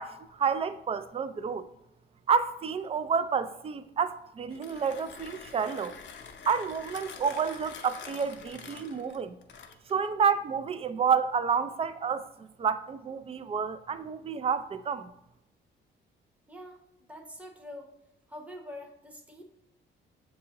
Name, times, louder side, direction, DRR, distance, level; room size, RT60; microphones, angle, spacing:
voice 1, 0.0-1.7 2.3-5.9 6.5-9.4 9.9-12.3 12.6-15.1, right 6 dB, 30° right, 12 dB, 0.3 m, -29 dB
Mechanisms, 4.4-10.0, left 6 dB, 65° left, 0.6 m, -46 dB
voice 2, 16.5-17.9 18.3-19.4, left 1 dB, 5° right, 2 dB, 0.8 m, -45 dB
6.5 x 2.7 x 2.8 m, 0.85 s
cardioid pair, 90°, 20 cm